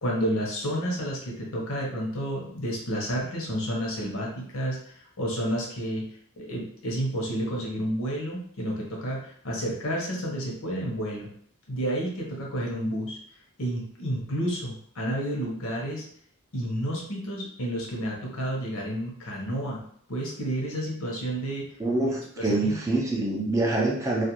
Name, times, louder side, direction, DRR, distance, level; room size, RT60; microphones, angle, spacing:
voice 1, 0.0-6.1 6.4-11.3 11.7-13.2 13.6-16.0 16.5-19.8 20.1-21.7 22.4-22.8, equal, 70° left, -2 dB, 0.8 m, -30 dB
voice 2, 21.8-24.2, right 2 dB, 15° right, -2 dB, 0.3 m, -25 dB
2.4 x 2.2 x 2.9 m, 0.62 s
head